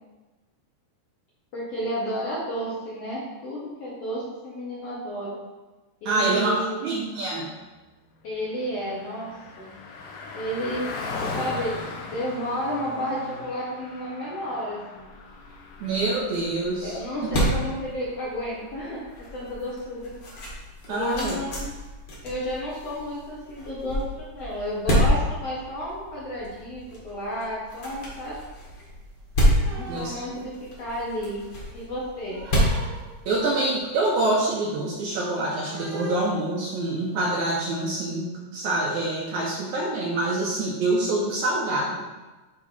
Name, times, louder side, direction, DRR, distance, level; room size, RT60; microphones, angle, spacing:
voice 1, 1.5-5.4 6.0-6.9 8.2-9.3 9.6-9.7 10.3-10.8 11.4-11.7 12.0-15.1 16.8-19.0 19.3-20.1 20.9-21.7 22.2-28.3 29.6-31.4 31.7-32.4, equal, 65° left, -6 dB, 1.6 m, -31 dB
voice 2, 6.1-7.5 15.8-17.0 20.9-21.4 29.9-30.1 33.3-42.0, right 2 dB, 75° right, -2 dB, 1.9 m, -26 dB
Car passing by, 8.1-19.9, left 3 dB, 80° left, 2.7 m, -39 dB
sound 1, 15.0-33.8, equal, 45° left, 1.9 m, -29 dB
sound 2, 28.8-31.2 31.5-33.4 33.9-34.0 34.3-37.4, right 3 dB, 90° right, 2.9 m, -42 dB
9.2 x 3.3 x 4.1 m, 1.2 s
omnidirectional pair, 4.1 m